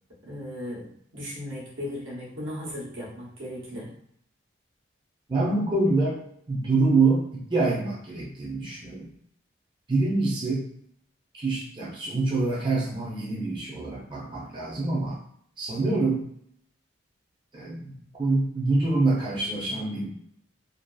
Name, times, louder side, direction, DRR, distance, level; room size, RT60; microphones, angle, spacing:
voice 1, 0.2-3.9, left 1 dB, 90° right, -6 dB, 1.0 m, -37 dB
voice 2, 5.3-9.1 9.9-10.6 11.3-15.2 15.6-16.3 17.5-17.9 18.2-20.1, right 3 dB, 25° right, -5 dB, 0.5 m, -26 dB
2.5 x 2.3 x 2.2 m, 0.67 s
head